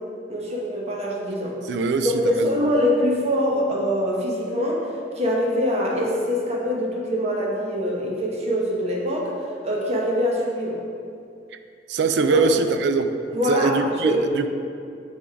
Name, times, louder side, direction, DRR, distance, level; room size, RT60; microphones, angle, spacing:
voice 1, 0.3-1.6 2.2-4.9 5.1-9.3 9.6-10.8 12.3-12.5 13.3-13.7 14.0-14.3, equal, 35° right, -3 dB, 1.0 m, -23 dB
voice 2, 1.7-2.5 11.9-13.1 13.5-14.5, right 4 dB, 65° right, 8 dB, 0.4 m, -22 dB
6.1 x 3.6 x 4.6 m, 2.4 s
head